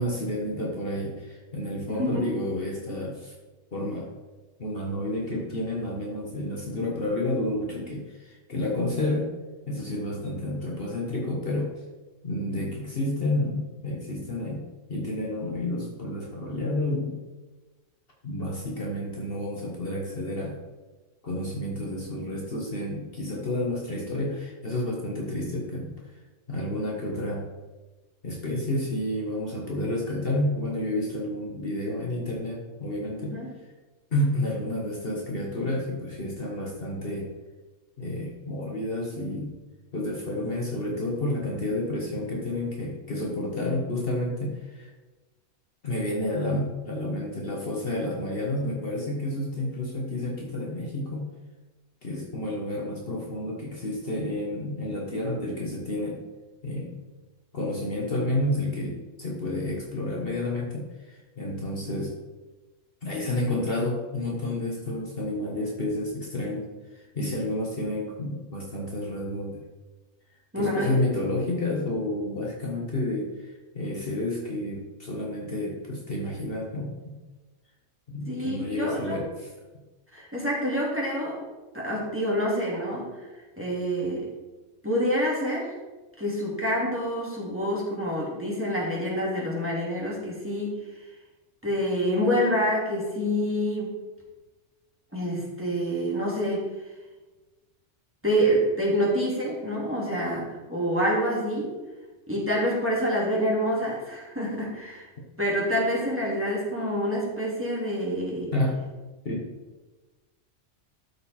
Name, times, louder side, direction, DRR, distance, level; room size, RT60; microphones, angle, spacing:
voice 1, 0.0-3.3 3.7-4.1 4.6-9.3 9.7-11.7 12.2-17.2 18.2-20.6 21.2-25.9 26.5-27.5 28.2-33.4 34.1-37.3 38.0-39.5 39.9-44.9 45.8-51.3 52.0-56.2 56.6-57.0 57.5-62.1 63.0-69.6 70.6-77.2 78.1-79.5 108.5-108.8 109.2-109.5, left 1 dB, 50° left, -2 dB, 1.5 m, -30 dB
voice 2, 1.9-2.3 33.3-33.5 70.5-71.0 78.3-79.2 80.1-81.4 81.7-83.3 83.6-84.3 84.8-85.7 86.2-90.8 91.6-93.9 95.1-96.7 98.2-101.7 102.3-105.1 105.4-108.5, equal, 10° right, -5 dB, 2.6 m, -27 dB
12.5 x 5.1 x 4.3 m, 1.2 s
omnidirectional pair, 1.3 m